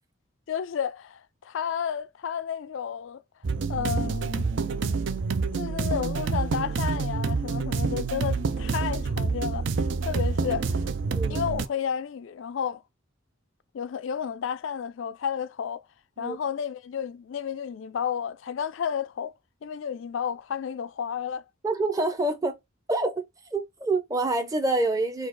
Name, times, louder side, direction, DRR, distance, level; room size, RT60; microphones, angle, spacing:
voice 1, 0.5-3.2 3.7-4.5 5.6-9.6 10.0-10.8 11.3-12.8 13.7-15.8 16.2-19.3 19.6-21.4, left 7 dB, 70° left, 0.4 m, -31 dB
sound 1, 3.4-11.7, right 4 dB, 60° right, 0.5 m, -27 dB
voice 2, 11.1-11.4 16.2-16.4 21.6-22.5 22.9-23.2 23.5-25.3, right 2 dB, 15° right, 0.7 m, -26 dB
4.3 x 2.4 x 4.5 m
head